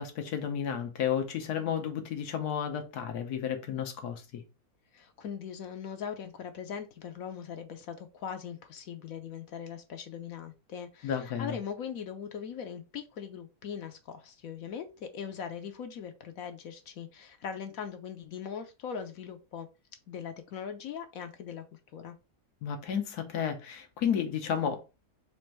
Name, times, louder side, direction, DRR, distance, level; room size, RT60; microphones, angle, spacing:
voice 1, 0.0-4.4 11.0-11.6 22.6-24.8, left 8 dB, 90° left, 1.5 m, -32 dB
voice 2, 4.9-19.7 20.1-21.6 21.9-22.2, left 7 dB, 70° left, 1.1 m, -40 dB
4.3 x 2.6 x 4.5 m
omnidirectional pair, 1.6 m